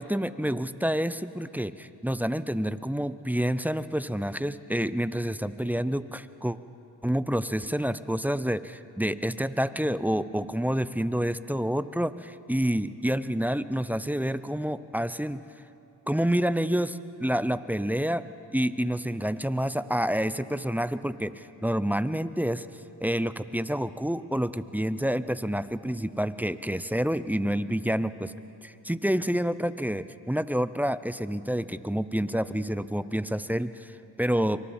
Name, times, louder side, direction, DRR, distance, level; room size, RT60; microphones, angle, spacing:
voice 1, 0.0-6.6 7.0-15.4 16.1-18.2 18.5-22.7 23.0-28.3 28.6-34.6, equal, 5° right, 14 dB, 0.6 m, -28 dB
26.5 x 24.0 x 4.3 m, 2.7 s
cardioid pair, 65°, 42 cm